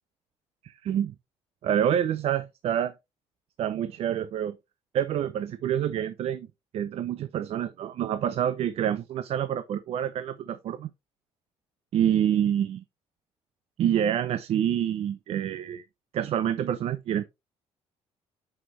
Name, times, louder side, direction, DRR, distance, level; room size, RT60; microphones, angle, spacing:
voice 1, 0.6-1.1 1.6-2.9 3.6-4.6 4.9-6.5 6.7-10.9 11.9-12.8 13.8-15.8 16.1-17.2, right 10 dB, 60° right, 0.7 m, -27 dB
7.7 x 6.0 x 3.2 m
cardioid pair, 115°, 11 cm